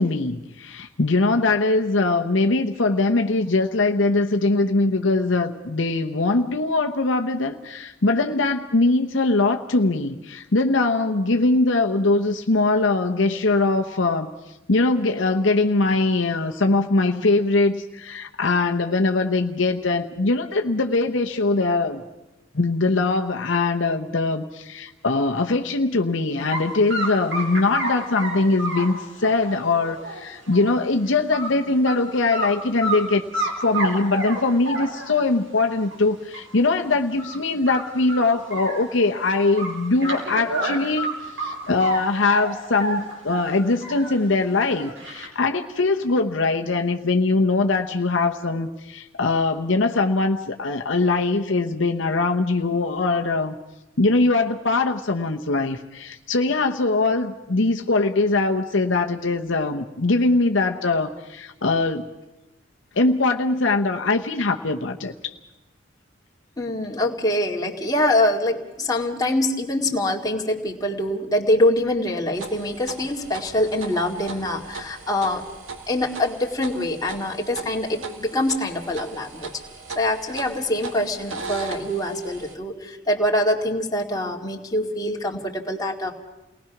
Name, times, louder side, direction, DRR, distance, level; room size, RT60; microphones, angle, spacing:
voice 1, 0.0-14.3 14.7-22.0 22.5-41.1 41.4-53.5 54.0-62.1 63.0-65.3, left 3 dB, 65° left, 4 dB, 1.0 m, -22 dB
sound 1, 26.5-26.6 26.9-30.7 31.1-31.5 31.9-32.0 32.3-33.0 33.3-35.3 35.9-36.0 36.3-36.4 36.7-36.8 37.2-37.4 37.7-39.2 39.6-42.0 42.3-44.2 44.5-45.3, right 1 dB, 70° right, 4.9 m, -29 dB
voice 2, 66.6-75.4 75.9-79.5 80.0-86.1, left 1 dB, 20° left, 0 dB, 2.1 m, -24 dB
sound 2, 72.3-82.5, right 4 dB, 90° right, 2.1 m, -38 dB
29.0 x 19.5 x 6.0 m, 0.98 s
head